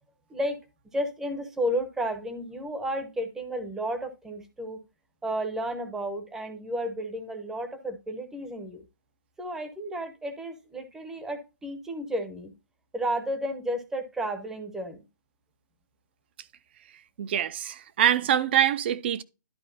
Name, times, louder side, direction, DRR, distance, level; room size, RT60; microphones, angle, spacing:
voice 1, 0.9-4.8 5.2-8.8 9.4-12.5 12.9-15.1, equal, 5° right, 0.8 m, -32 dB
voice 2, 17.2-19.2, right 10 dB, 30° right, 0.5 m, -24 dB
12.0 x 4.6 x 2.7 m
hypercardioid pair, 160°, 11 cm